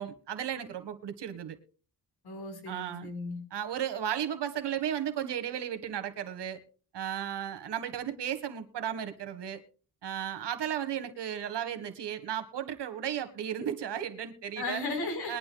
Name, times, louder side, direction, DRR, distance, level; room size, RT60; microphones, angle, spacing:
voice 1, 0.0-1.6 2.7-3.1 3.5-6.6 6.9-9.6 10.0-14.8 15.3-15.4, right 9 dB, 75° right, 1.8 m, -34 dB
voice 2, 2.2-3.4 14.6-15.4, left 3 dB, 65° left, 4.6 m, -35 dB
22.0 x 12.0 x 2.4 m
wide cardioid pair, 150°, 41 cm